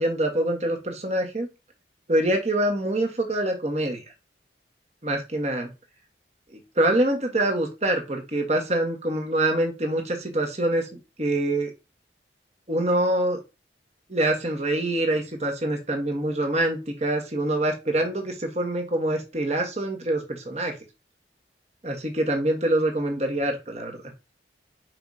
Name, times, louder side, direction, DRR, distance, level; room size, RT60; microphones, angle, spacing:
voice 1, 0.0-1.5 2.1-4.0 5.0-5.7 6.5-10.9 11.2-11.7 12.7-13.4 14.1-20.7 21.8-24.0, right 1 dB, 35° right, 2 dB, 1.6 m, -25 dB
5.8 x 4.9 x 4.2 m, 0.26 s
head